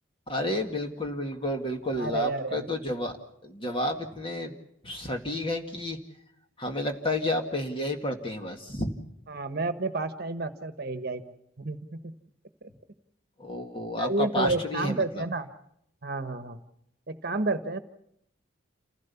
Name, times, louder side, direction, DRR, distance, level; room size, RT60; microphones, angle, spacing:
voice 1, 0.3-3.1 3.4-4.5 4.8-6.0 6.6-8.9 13.4-15.2, left 1 dB, 25° left, 4 dB, 2.1 m, -31 dB
voice 2, 2.0-3.0 9.3-11.2 11.6-12.0 14.0-15.5 16.0-16.6 17.1-17.8, right 3 dB, 50° right, 10 dB, 1.3 m, -30 dB
28.5 x 16.0 x 7.1 m, 0.75 s
head